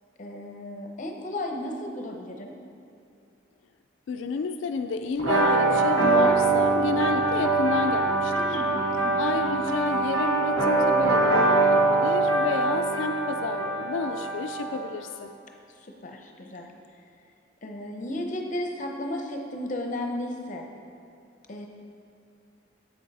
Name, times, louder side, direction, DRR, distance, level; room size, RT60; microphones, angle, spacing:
voice 1, 0.2-2.6 8.3-9.2 9.5-9.7 10.0-10.1 15.8-16.7 17.6-20.7 21.5-21.7, left 1 dB, 40° left, 3 dB, 0.7 m, -34 dB
voice 2, 4.1-8.6 9.2-15.3, left 5 dB, 70° left, 7 dB, 0.3 m, -30 dB
sound 1, 5.2-14.8, right 3 dB, 80° right, 1.3 m, -23 dB
8.1 x 6.4 x 4.1 m, 2.6 s
head